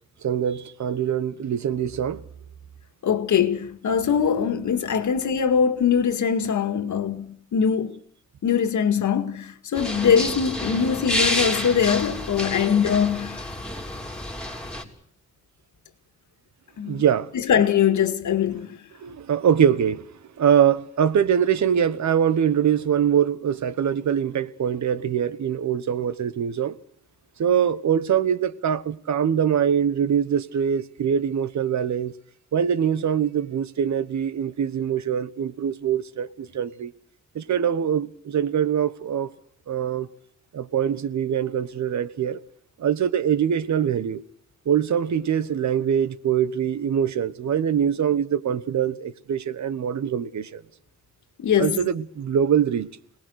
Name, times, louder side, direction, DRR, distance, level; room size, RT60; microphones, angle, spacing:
voice 1, 0.2-2.2 16.8-17.3 19.0-20.1 20.4-26.8 27.4-32.1 32.5-36.9 37.3-39.3 39.7-40.1 40.5-42.4 42.8-44.2 44.6-50.6 51.6-52.9, right 8 dB, 75° right, 1.2 m, -23 dB
voice 2, 3.0-7.9 8.4-13.4 16.8-17.0 17.3-18.8 51.4-51.8, left 7 dB, 90° left, 2.0 m, -22 dB
sound 1, 9.7-14.8, left 1 dB, 5° left, 3.2 m, -29 dB
26.0 x 19.5 x 6.5 m
wide cardioid pair, 145°, 29 cm